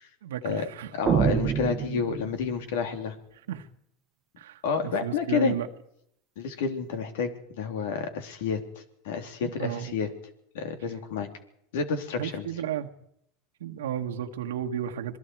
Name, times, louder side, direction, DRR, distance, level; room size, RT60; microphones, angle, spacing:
voice 1, 0.2-1.0 3.5-3.7 4.4-5.7 9.4-9.9 12.2-12.9 13.6-15.2, right 10 dB, 85° right, 4 dB, 1.4 m, -33 dB
voice 2, 0.9-3.2 4.6-5.6 6.4-10.1 10.5-11.3 11.7-12.5, left 6 dB, 75° left, 6 dB, 3.4 m, -30 dB
sound 1, 1.1-2.7, right 9 dB, 35° right, 1.0 m, -26 dB
27.0 x 21.5 x 4.7 m, 0.75 s
hypercardioid pair, 100°, 0 cm